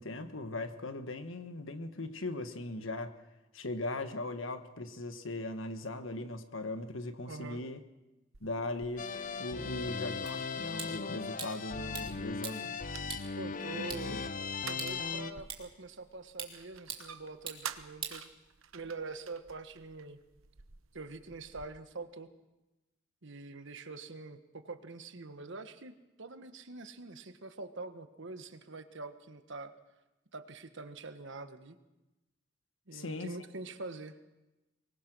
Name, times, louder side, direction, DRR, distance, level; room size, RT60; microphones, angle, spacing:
voice 1, 0.0-3.2 3.5-7.8 8.4-9.1 9.4-12.8 13.7-14.2 32.9-33.3, left 2 dB, 70° left, 1.5 m, -39 dB
voice 2, 7.3-7.6 13.4-14.3 14.7-18.3 18.7-20.2 20.9-22.3 23.2-29.7 30.3-31.8 32.9-34.1, right 3 dB, 65° right, 1.4 m, -45 dB
sound 1, 8.3-21.7, right 8 dB, 85° right, 1.0 m, -51 dB
sound 2, 9.0-15.3, left 5 dB, 40° left, 0.7 m, -38 dB
sound 3, 10.3-18.9, right 6 dB, 25° right, 2.8 m, -47 dB
24.0 x 20.5 x 6.2 m
head